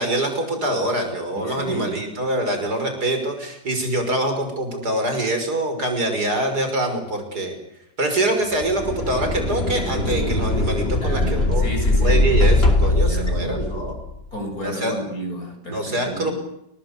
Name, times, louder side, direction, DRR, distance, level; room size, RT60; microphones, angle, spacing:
voice 1, 0.0-7.5 8.0-11.7 12.0-14.0 14.6-14.9 15.7-16.3, right 1 dB, 60° right, 5 dB, 6.4 m, -24 dB
voice 2, 1.3-1.9 11.0-12.4 13.0-13.9 14.3-16.3, equal, 55° left, 5 dB, 7.7 m, -31 dB
sound 1, 8.5-14.2, left 2 dB, 35° left, 2.9 m, -21 dB
30.0 x 19.5 x 8.4 m, 0.81 s
omnidirectional pair, 1.9 m